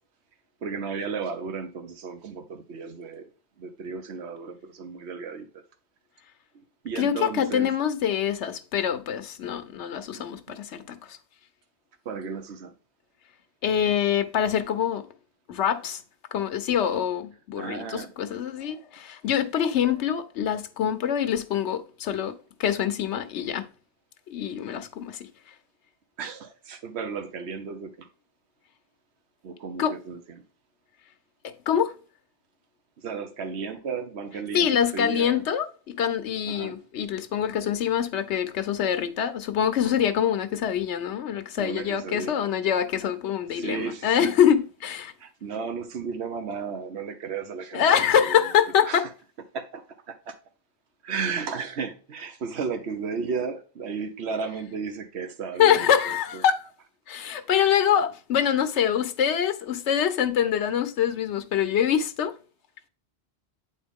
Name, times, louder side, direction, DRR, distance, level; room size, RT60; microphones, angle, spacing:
voice 1, 0.6-3.3 3.6-5.6 6.8-7.7 10.1-10.6 12.0-12.7 17.5-18.1 26.2-28.1 29.4-30.4 33.0-35.4 36.5-36.8 41.6-42.5 43.5-44.3 45.2-48.4 48.8-49.1 49.5-50.4 51.0-56.4, right 5 dB, 70° right, 1.2 m, -34 dB
voice 2, 7.0-11.2 13.6-15.1 15.5-16.0 16.3-23.7 24.3-25.3 29.8-29.9 31.4-31.9 34.5-45.1 47.7-49.0 55.6-56.6 57.1-62.3, left 9 dB, 80° left, 1.1 m, -25 dB
8.6 x 4.4 x 3.5 m
omnidirectional pair, 1.1 m